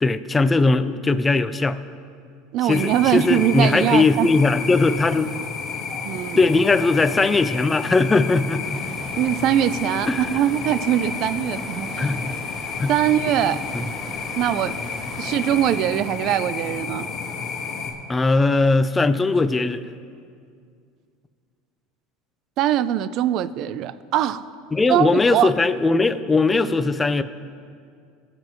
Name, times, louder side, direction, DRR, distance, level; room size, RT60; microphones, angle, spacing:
voice 1, 0.0-1.8 2.6-5.3 6.4-8.8 10.1-10.3 12.0-12.3 12.8-12.9 13.7-13.8 18.1-19.8 24.7-27.2, left 3 dB, 15° left, 11 dB, 0.4 m, -19 dB
voice 2, 2.5-4.3 6.0-6.4 9.2-12.1 12.9-13.6 14.4-14.8 15.2-17.1 22.6-24.4 24.9-25.5, right 11 dB, 50° right, 16 dB, 0.4 m, -22 dB
sound 1, 2.7-17.9, left 5 dB, 45° left, 1.6 m, -31 dB
sound 2, 8.6-15.8, right 2 dB, 30° right, 1.8 m, -40 dB
21.0 x 7.7 x 3.1 m, 2.3 s
supercardioid pair, 130°, 0 cm